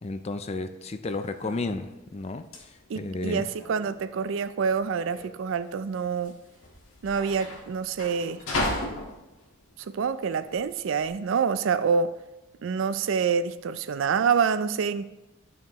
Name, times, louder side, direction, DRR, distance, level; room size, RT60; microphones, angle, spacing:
voice 1, 0.0-3.5, left 3 dB, 30° left, 10 dB, 0.4 m, -33 dB
sound 1, 1.0-11.1, left 2 dB, 85° left, 1.6 m, -37 dB
voice 2, 2.9-6.4 7.0-8.8 9.9-12.1 12.6-15.0, right 6 dB, 65° right, 13 dB, 0.4 m, -27 dB
11.0 x 5.8 x 3.0 m, 1.0 s
head